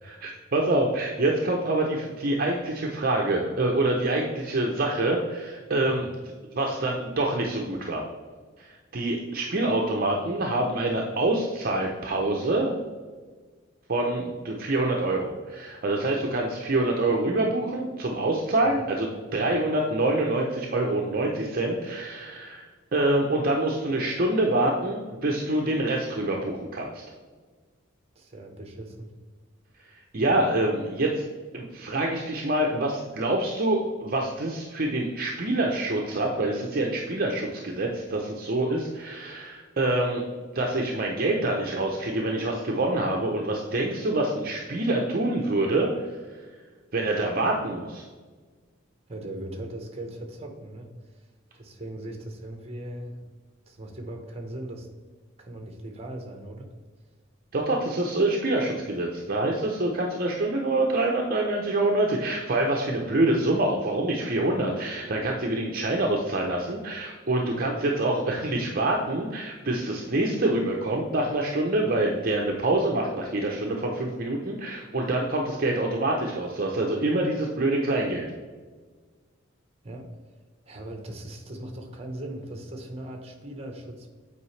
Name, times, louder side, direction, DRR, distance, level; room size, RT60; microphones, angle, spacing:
voice 1, 0.0-6.1 6.5-8.0 8.6-12.8 13.9-27.0 30.1-31.2 31.5-40.2 40.5-45.9 46.9-48.1 57.5-78.3, right 2 dB, 45° right, 0 dB, 0.7 m, -26 dB
voice 2, 28.1-29.1 49.1-50.9 51.2-51.3 51.5-53.2 53.7-54.9 55.4-56.7 67.5-67.7 79.8-80.2 80.6-84.1, right 1 dB, 30° right, 3 dB, 1.1 m, -39 dB
8.5 x 4.8 x 3.2 m, 1.4 s
head